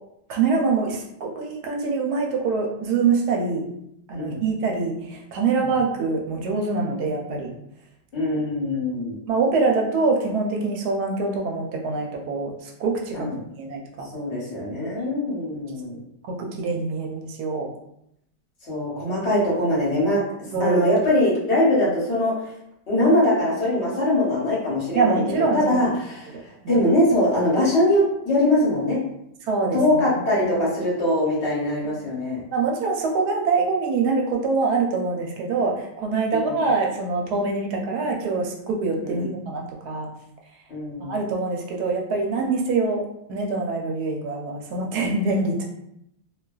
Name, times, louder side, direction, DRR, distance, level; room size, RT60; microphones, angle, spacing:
voice 1, 0.3-3.6 4.1-7.5 9.3-13.3 13.6-14.1 14.7-14.9 16.3-17.7 20.5-20.9 24.9-25.9 26.3-26.9 29.5-30.4 32.5-40.1 41.0-43.0 43.3-45.6, right 4 dB, 70° right, 1 dB, 1.0 m, -24 dB
voice 2, 8.1-9.2 13.1-13.3 14.1-16.0 18.6-20.2 20.6-22.3 22.9-26.3 26.7-29.0 29.7-32.4 36.3-36.6 39.0-39.3 40.7-41.1, left 1 dB, 45° left, -6 dB, 1.0 m, -22 dB
2.7 x 2.3 x 2.3 m, 0.78 s
omnidirectional pair, 1.9 m